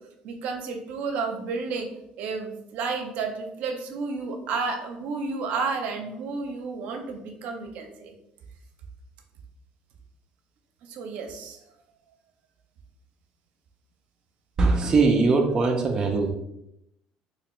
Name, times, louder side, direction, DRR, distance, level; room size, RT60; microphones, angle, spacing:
voice 1, 0.2-1.9 2.2-8.1 10.9-11.6, right 4 dB, 65° right, 4 dB, 0.6 m, -31 dB
voice 2, 14.6-16.3, right 3 dB, 25° right, 1 dB, 0.4 m, -21 dB
3.3 x 2.9 x 3.1 m, 0.80 s
cardioid pair, 120°, 3 cm